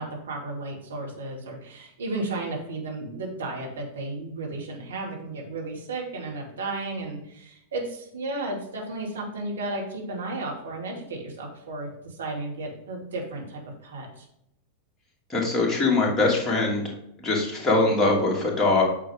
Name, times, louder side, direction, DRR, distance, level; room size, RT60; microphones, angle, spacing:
voice 1, 0.0-14.2, right 2 dB, 65° right, -1 dB, 2.4 m, -34 dB
voice 2, 15.3-16.8 17.2-18.8, left 3 dB, 10° left, -4 dB, 2.7 m, -22 dB
9.0 x 6.6 x 3.6 m, 0.77 s
figure-of-eight pair, 90°, 0 cm